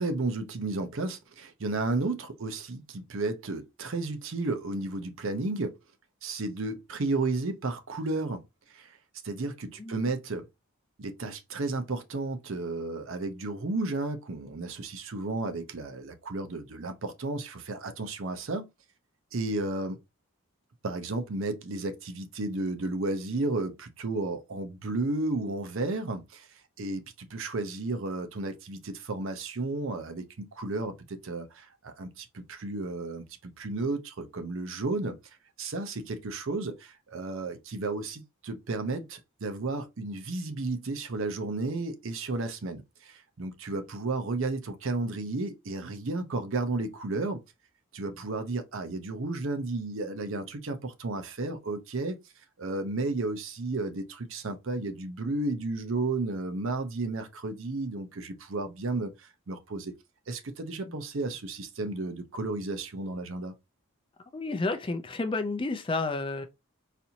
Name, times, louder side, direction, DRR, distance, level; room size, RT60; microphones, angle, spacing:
voice 1, 0.0-5.8 6.2-8.4 8.7-9.0 9.2-10.5 11.0-18.7 19.3-20.0 20.8-35.2 35.6-47.4 47.9-52.2 52.6-59.9 60.3-63.5, right 2 dB, 60° right, 0.6 m, -33 dB
voice 2, 9.8-10.1 60.8-61.0 64.3-66.5, left 3 dB, 25° left, 0.4 m, -31 dB
4.1 x 2.6 x 2.8 m
head